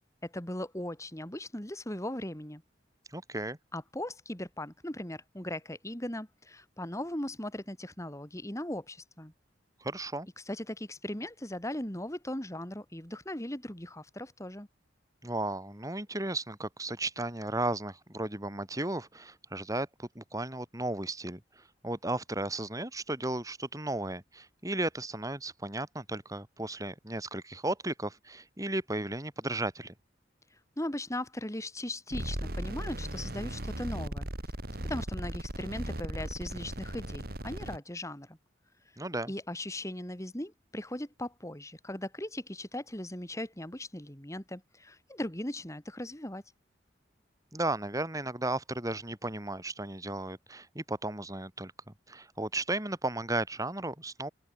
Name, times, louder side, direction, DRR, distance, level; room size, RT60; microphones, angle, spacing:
voice 1, 0.2-2.6 3.7-9.3 10.4-14.7 30.5-34.3 34.8-38.4 39.3-46.4, left 1 dB, 15° left, 3.2 m, -38 dB
voice 2, 3.1-3.6 9.8-10.3 15.2-29.9 39.0-39.3 47.5-51.7 52.1-54.3, right 2 dB, 20° right, 5.2 m, -35 dB
sound 1, 32.1-37.8, right 1 dB, 55° right, 3.6 m, -37 dB
open air
head